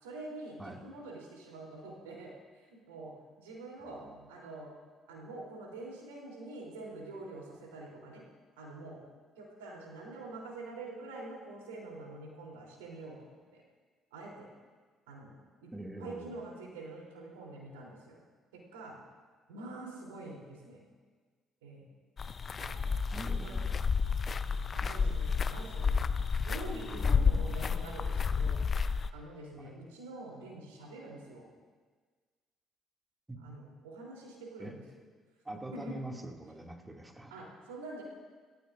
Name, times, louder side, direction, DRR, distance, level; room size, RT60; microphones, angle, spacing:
voice 1, 0.0-2.3 2.6-4.0 4.3-4.7 5.1-8.2 8.6-9.0 9.4-13.6 14.1-14.5 15.1-15.7 16.0-18.2 18.5-19.0 19.5-20.8 21.6-21.9 22.6-22.9 23.2-23.7 24.7-26.0 26.4-28.6 29.1-31.5 33.4-34.7 35.5-36.0 37.3-38.0, right 2 dB, 75° right, -2 dB, 3.3 m, -46 dB
voice 2, 3.8-4.2 15.7-16.3 23.1-23.7 29.6-29.7 33.3-33.4 34.6-34.7 35.4-37.3, right 1 dB, 15° right, 2 dB, 2.3 m, -44 dB
sound 1, 22.2-29.1, left 5 dB, 35° left, 0.6 m, -30 dB
27.5 x 14.0 x 2.6 m, 1.5 s
figure-of-eight pair, 45°, 0 cm